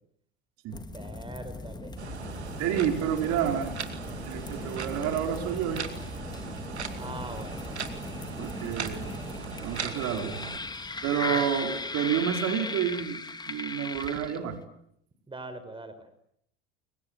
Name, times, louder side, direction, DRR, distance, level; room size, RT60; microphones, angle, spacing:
sound 1, 0.7-14.6, left 3 dB, 15° left, 2.8 m, -38 dB
voice 1, 0.9-2.0 6.9-7.6 11.3-11.5 15.3-16.1, right 2 dB, 15° right, 12 dB, 5.2 m, -42 dB
sound 2, 2.0-10.6, right 7 dB, 90° right, 2.4 m, -39 dB
voice 2, 2.6-3.7 4.3-5.8 8.4-9.1 9.6-10.4 11.0-14.6, right 9 dB, 55° right, 5 dB, 4.7 m, -29 dB
29.5 x 23.5 x 8.1 m, 0.72 s
hypercardioid pair, 80°, 32 cm